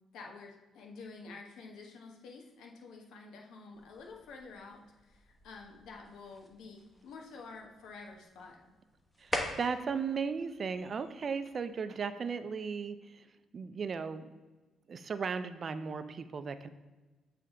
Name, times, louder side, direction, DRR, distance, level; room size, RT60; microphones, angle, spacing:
voice 1, 0.1-8.6, left 4 dB, 85° left, 1 dB, 1.0 m, -49 dB
sound 1, 3.7-11.7, left 1 dB, 15° left, 1.0 m, -45 dB
voice 2, 9.2-13.3 13.5-14.3 14.9-16.7, right 5 dB, 45° right, 11 dB, 0.4 m, -36 dB
8.2 x 3.3 x 3.7 m, 1.2 s
cardioid pair, 90°, 0 cm